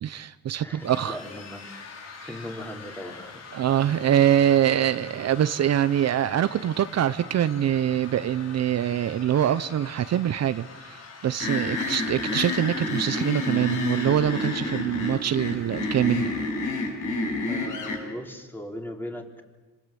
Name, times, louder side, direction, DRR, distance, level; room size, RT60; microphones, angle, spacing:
voice 1, 0.0-1.2 3.5-16.3, right 10 dB, 60° right, 13 dB, 0.8 m, -24 dB
voice 2, 0.6-1.6 2.2-3.4 17.5-19.3, left 1 dB, 5° left, 2 dB, 4.2 m, -38 dB
sound 1, 0.8-17.1, left 4 dB, 55° left, 4.7 m, -45 dB
sound 2, 11.4-18.0, left 2 dB, 80° left, 7.1 m, -29 dB
26.5 x 26.0 x 8.7 m, 1.2 s
cardioid pair, 90°, 30 cm